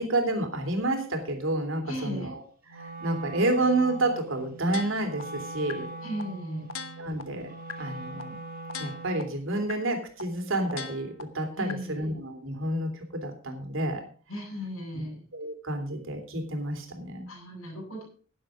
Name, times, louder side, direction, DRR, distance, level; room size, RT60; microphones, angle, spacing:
voice 1, 0.0-2.4 2.7-5.9 7.0-7.5 7.8-8.4 8.8-14.0 15.3-17.3, right 2 dB, 65° right, 5 dB, 3.2 m, -29 dB
voice 2, 1.9-2.3 6.0-6.7 11.6-12.1 14.3-15.2 17.3-18.0, equal, 90° left, -3 dB, 6.9 m, -36 dB
Wind instrument woodwind instrument, 2.7-9.4, right 2 dB, 45° right, 2.9 m, -42 dB
sound 1, 4.7-5.2 5.7-5.8 6.2-6.3 6.7-7.2 7.7-7.8 8.2-8.3 8.7-9.2 9.7-9.8 10.2-10.3 10.7-11.2 11.7-11.8, left 5 dB, 70° left, 1.3 m, -38 dB
11.0 x 10.0 x 5.1 m, 0.42 s
head